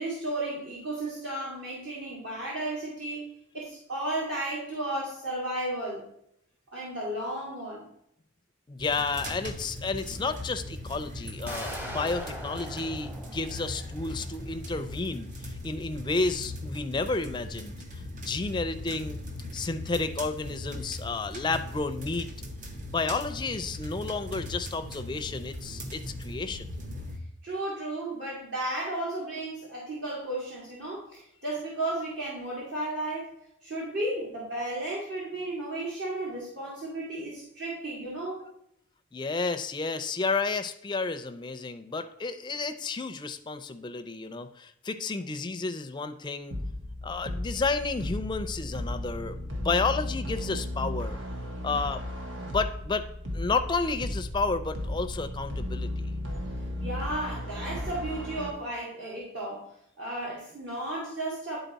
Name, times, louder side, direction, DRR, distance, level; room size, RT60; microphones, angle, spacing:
voice 1, 0.0-3.2 3.5-6.0 6.7-7.9 27.4-38.4 56.8-59.6 60.0-61.6, right 1 dB, 60° right, -6 dB, 1.9 m, -34 dB
voice 2, 8.7-17.8 18.2-19.2 19.5-22.3 22.9-26.7 39.1-46.6 47.0-51.2 51.6-52.0 52.4-53.1 53.3-56.1, left 3 dB, 25° left, 9 dB, 0.4 m, -31 dB
sound 1, 8.8-27.2, left 1 dB, 45° right, 1.0 m, -39 dB
sound 2, 11.5-14.3, equal, 10° right, 0.8 m, -40 dB
sound 3, 46.5-58.5, left 1 dB, 75° right, 1.1 m, -35 dB
10.0 x 4.1 x 4.0 m, 0.74 s
head